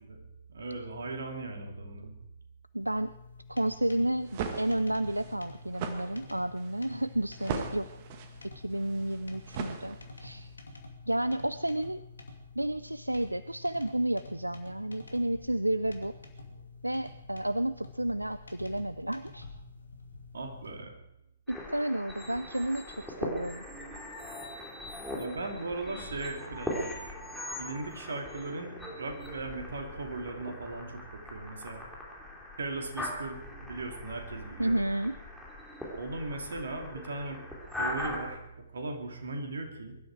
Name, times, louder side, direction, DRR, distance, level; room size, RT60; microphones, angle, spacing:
voice 1, 0.5-2.1 20.3-20.9 25.1-31.8 32.6-34.8 36.0-37.4 37.7-38.4 38.7-40.0, right 2 dB, 60° right, 3 dB, 2.8 m, -38 dB
voice 2, 2.7-3.1 3.5-7.9 8.6-10.5 11.1-12.0 12.6-16.1 16.8-19.5 21.5-23.6 34.6-35.2, right 1 dB, 85° right, 15 dB, 0.4 m, -31 dB
sound 1, 2.8-20.7, left 3 dB, 75° left, 2.5 m, -49 dB
sound 2, 4.1-10.4, right 7 dB, 35° right, 1.7 m, -40 dB
sound 3, 21.5-38.4, left 1 dB, ahead, 3.3 m, -40 dB
22.5 x 12.0 x 4.7 m, 0.88 s
figure-of-eight pair, 125°, 0 cm